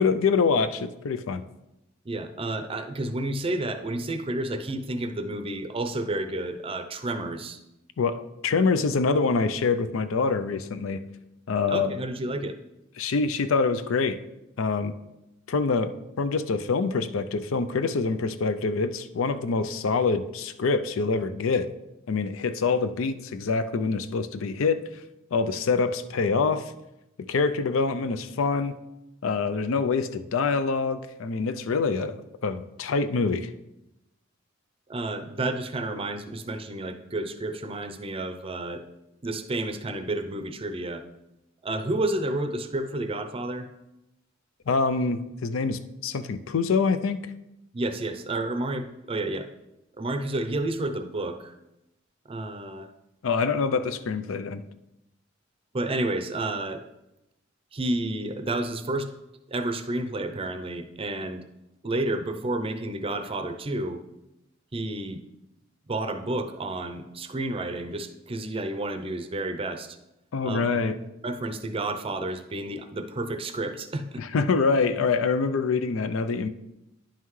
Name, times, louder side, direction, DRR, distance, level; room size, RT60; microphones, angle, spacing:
voice 1, 0.0-1.4 8.0-11.0 11.5-11.9 13.0-14.2 14.6-14.9 15.5-21.7 22.1-24.9 25.3-26.7 27.3-28.8 29.2-33.5 44.7-47.2 53.2-54.6 70.3-71.0 74.2-76.5, left 4 dB, 90° left, 11 dB, 0.5 m, -25 dB
voice 2, 2.1-7.6 11.7-12.6 34.9-38.8 39.2-41.0 41.6-43.7 47.7-49.5 50.0-51.5 52.3-52.9 55.7-56.8 57.7-59.1 59.5-61.4 61.8-64.0 64.7-65.2 65.9-70.0 70.4-70.9 71.2-74.2, right 2 dB, 30° right, 8 dB, 0.5 m, -30 dB
10.0 x 5.6 x 3.1 m, 0.91 s
head